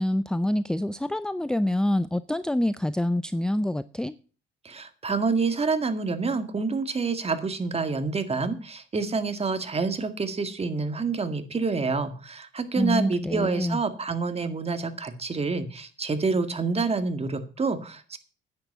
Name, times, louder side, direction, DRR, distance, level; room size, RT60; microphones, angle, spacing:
voice 1, 0.0-4.2 12.8-13.8, left 1 dB, 5° left, 15 dB, 0.5 m, -26 dB
voice 2, 4.6-18.2, right 4 dB, 30° right, 9 dB, 2.0 m, -27 dB
10.0 x 9.5 x 5.5 m, 0.36 s
cardioid pair, 90°, 20 cm